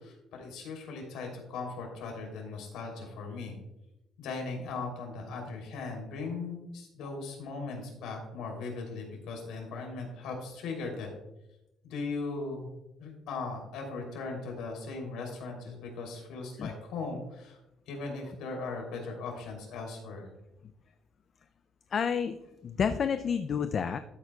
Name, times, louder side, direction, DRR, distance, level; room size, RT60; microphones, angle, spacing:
voice 1, 0.0-3.6 4.2-11.1 11.8-12.7 13.0-17.6 17.9-20.3, left 3 dB, 80° left, 1 dB, 3.0 m, -38 dB
voice 2, 21.9-22.4 22.6-24.0, left 6 dB, 35° left, 10 dB, 0.3 m, -29 dB
13.0 x 8.1 x 2.3 m, 0.90 s
cardioid pair, 175°, 0 cm